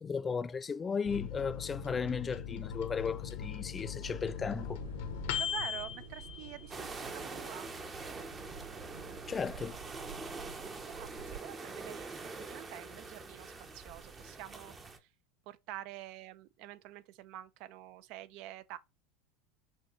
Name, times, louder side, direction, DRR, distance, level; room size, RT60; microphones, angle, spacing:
voice 1, 0.0-4.8 9.3-9.8, left 5 dB, 25° left, 0.3 m, -35 dB
Microwave oven, 1.0-7.1 7.5-7.6 7.9-8.5, left 9 dB, 75° left, 0.8 m, -40 dB
sound 1, 4.0-11.4, right 6 dB, 80° right, 2.4 m, -50 dB
voice 2, 5.4-7.7 10.4-15.1 15.5-18.8, right 14 dB, 60° right, 0.4 m, -48 dB
sound 2, 6.7-15.0, right 3 dB, 25° right, 0.7 m, -44 dB
6.1 x 2.3 x 3.0 m
hypercardioid pair, 100°, 0 cm